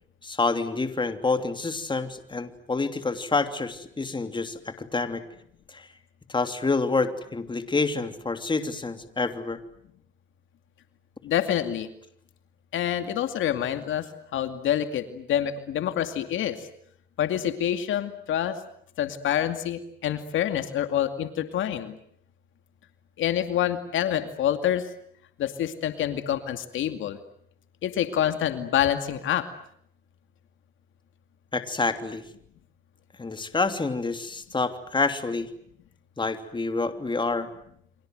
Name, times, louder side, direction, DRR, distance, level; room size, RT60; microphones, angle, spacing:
voice 1, 0.2-5.2 5.7-5.9 6.3-9.6 31.5-32.2 33.2-35.5 36.2-37.5, left 3 dB, 25° left, 8 dB, 3.1 m, -28 dB
voice 2, 11.2-11.9 12.7-14.1 14.3-16.6 17.2-18.6 19.0-22.0 23.2-24.9 25.4-27.2 27.8-29.5, left 10 dB, 80° left, 8 dB, 2.5 m, -27 dB
30.0 x 25.0 x 7.9 m, 0.69 s
cardioid pair, 90°, 20 cm